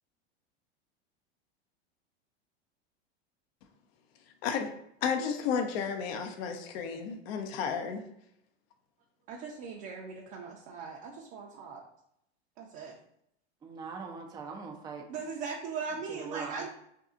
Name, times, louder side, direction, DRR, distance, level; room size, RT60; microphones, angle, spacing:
voice 1, 5.0-8.0, left 6 dB, 65° left, 4 dB, 0.6 m, -32 dB
voice 2, 9.3-11.8 12.6-12.9 15.1-16.7, right 5 dB, 55° right, -1 dB, 0.7 m, -39 dB
voice 3, 13.6-15.3 16.1-16.7, right 5 dB, 15° right, 2 dB, 0.3 m, -42 dB
2.7 x 2.3 x 3.6 m, 0.75 s
hypercardioid pair, 100°, 33 cm